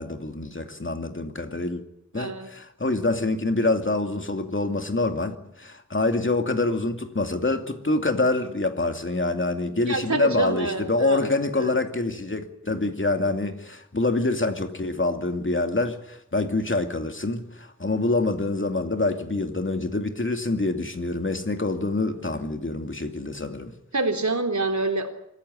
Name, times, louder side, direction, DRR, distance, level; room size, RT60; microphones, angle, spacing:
voice 1, 0.0-1.8 2.1-23.7, left 2 dB, 45° left, 2.6 m, -26 dB
voice 2, 2.1-2.5 9.9-11.2 11.5-11.8 23.9-25.1, right 2 dB, 75° right, 3.6 m, -26 dB
25.5 x 15.0 x 9.9 m
wide cardioid pair, 65°, 29 cm